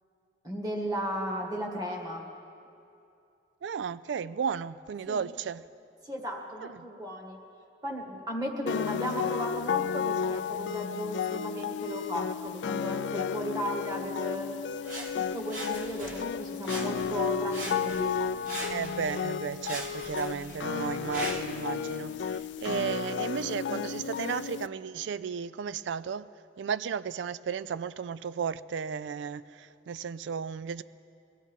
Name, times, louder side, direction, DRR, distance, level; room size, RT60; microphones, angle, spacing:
voice 1, 0.4-2.2 5.1-5.3 6.0-7.4 7.8-14.5 15.1-18.1, equal, 20° right, 1.9 m, -35 dB
voice 2, 3.6-5.7 6.6-6.7 18.7-26.3 26.6-30.8, right 6 dB, 85° right, 0.4 m, -34 dB
sound 1, 8.7-24.7, left 7 dB, 80° left, 0.3 m, -33 dB
Sawing, 14.8-16.3 16.6-17.2 17.5-19.2 19.6-21.6 22.3-22.4, right 1 dB, 45° right, 1.8 m, -40 dB
23.5 x 15.5 x 3.7 m
head